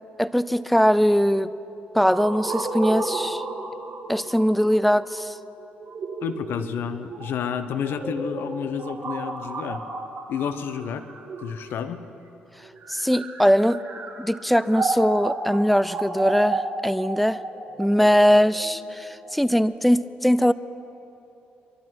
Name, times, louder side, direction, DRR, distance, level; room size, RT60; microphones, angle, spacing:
voice 1, 0.2-1.5 1.9-3.4 4.1-5.3 12.9-13.8 14.2-17.4 17.8-20.5, equal, ahead, 15 dB, 0.5 m, -21 dB
sound 1, 2.1-11.9 12.7-19.6, right 3 dB, 50° right, 2.1 m, -32 dB
voice 2, 6.2-9.8 10.3-11.1 11.4-12.0, left 7 dB, 70° left, 10 dB, 0.9 m, -30 dB
23.0 x 12.5 x 4.5 m, 3.0 s
supercardioid pair, 70°, 4 cm